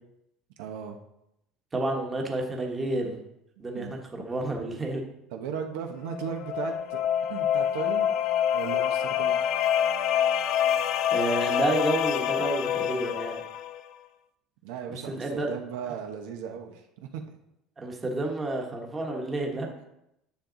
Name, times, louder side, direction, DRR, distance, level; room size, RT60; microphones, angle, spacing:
voice 1, 0.6-1.0 3.6-4.0 5.3-7.0 7.3-8.1 8.5-9.4 14.6-17.2, right 7 dB, 80° right, 4 dB, 1.1 m, -36 dB
voice 2, 1.7-3.2 3.6-5.0 11.1-13.4 15.1-15.5 17.8-19.7, right 2 dB, 15° right, 1 dB, 1.2 m, -30 dB
sound 1, 6.0-13.8, left 9 dB, 45° left, 0.5 m, -26 dB
9.9 x 7.3 x 3.9 m, 0.83 s
cardioid pair, 170°, 0 cm